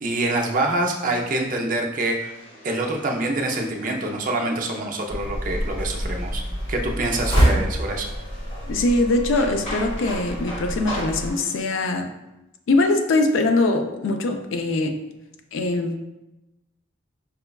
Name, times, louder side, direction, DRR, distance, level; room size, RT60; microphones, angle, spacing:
voice 1, 0.0-2.3 2.6-6.4 6.7-8.1, right 2 dB, 40° right, 1 dB, 0.4 m, -25 dB
sound 1, 2.1-11.6, equal, 35° left, 1.3 m, -40 dB
sound 2, 5.1-11.3, equal, 55° left, 1.3 m, -26 dB
voice 2, 8.7-12.1 12.7-15.0 15.5-16.0, left 2 dB, 80° left, 6 dB, 0.4 m, -22 dB
5.3 x 2.2 x 2.2 m, 0.94 s
head